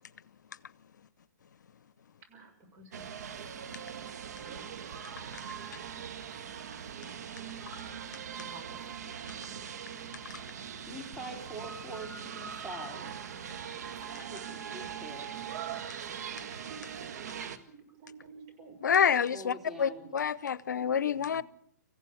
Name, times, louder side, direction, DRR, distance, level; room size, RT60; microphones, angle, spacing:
voice 1, 2.3-4.1 4.4-4.7 8.4-8.9 16.7-16.8 17.2-17.6 18.0-18.8 19.6-20.1 20.7-21.4, right 5 dB, 35° right, 6.7 m, -52 dB
sound 1, 2.9-17.6, right 8 dB, 65° right, 1.8 m, -41 dB
voice 2, 10.8-13.2 14.1-15.3 19.3-20.1, right 1 dB, 5° right, 3.8 m, -44 dB
voice 3, 18.8-21.4, left 7 dB, 75° left, 0.7 m, -28 dB
26.0 x 15.5 x 7.0 m
hypercardioid pair, 135°, 10 cm